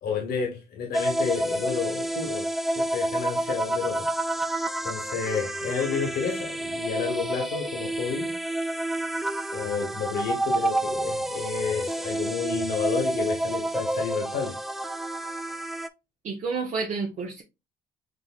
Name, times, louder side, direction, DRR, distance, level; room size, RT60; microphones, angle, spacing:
voice 1, 0.0-2.5 2.7-4.1 4.8-8.3 9.5-14.6, left 6 dB, 65° left, 1.6 m, -30 dB
sound 1, 0.9-15.9, right 1 dB, ahead, 0.4 m, -29 dB
voice 2, 16.2-17.4, right 4 dB, 45° right, 0.9 m, -30 dB
6.7 x 2.6 x 2.5 m
cardioid pair, 110°, 17 cm